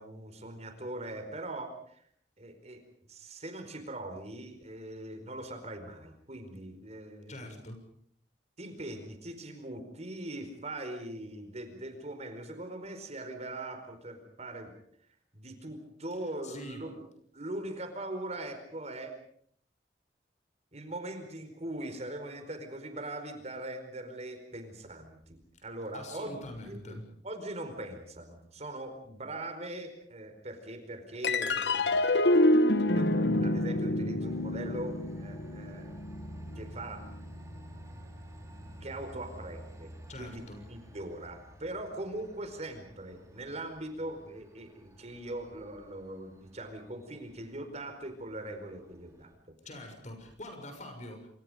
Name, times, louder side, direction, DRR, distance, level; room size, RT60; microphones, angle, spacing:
voice 1, 0.0-2.0 2.4-2.8 3.1-7.6 8.6-14.7 15.3-17.0 17.3-19.1 20.7-26.4 26.6-27.0 27.2-32.1 32.8-36.0 36.6-37.0 38.8-39.9 40.2-40.4 40.7-49.5, right 1 dB, 40° right, 7 dB, 4.7 m, -41 dB
voice 2, 7.3-7.9 16.4-16.9 25.9-27.1 40.1-40.7 49.6-51.3, left 1 dB, 45° left, 5 dB, 6.6 m, -44 dB
Harp Glissando Down, 31.2-37.9, left 1 dB, 75° left, 1.3 m, -28 dB
Train, 34.2-49.3, right 1 dB, 20° right, 5.1 m, -51 dB
28.0 x 27.0 x 5.2 m, 0.62 s
head